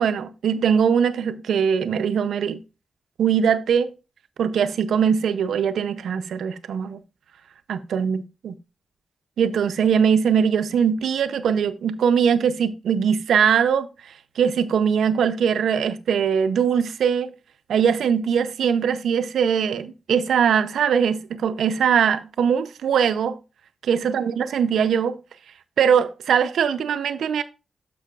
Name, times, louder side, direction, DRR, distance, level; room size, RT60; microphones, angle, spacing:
voice 1, 0.0-2.6 3.2-3.9 4.4-7.0 7.7-8.5 9.4-13.9 14.4-17.3 17.7-23.4 23.9-25.2 25.8-27.4, right 7 dB, 85° right, 0.5 m, -21 dB
12.0 x 5.4 x 2.3 m
cardioid pair, 50°, 0 cm